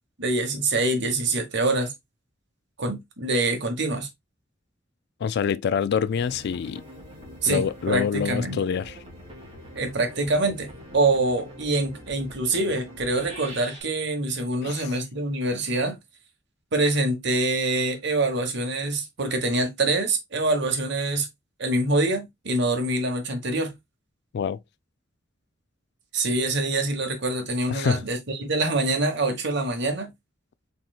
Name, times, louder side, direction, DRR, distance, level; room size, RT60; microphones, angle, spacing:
voice 1, 0.2-1.9 2.8-4.1 7.4-8.6 9.7-16.0 16.7-21.3 21.6-23.7 26.1-30.1, right 2 dB, 65° right, 1.2 m, -25 dB
voice 2, 5.2-6.8 7.5-9.0 14.6-14.9 24.3-24.6 27.7-28.0, left 7 dB, 60° left, 0.3 m, -26 dB
sound 1, 6.1-13.8, equal, 30° right, 2.1 m, -43 dB
4.3 x 3.8 x 2.3 m
head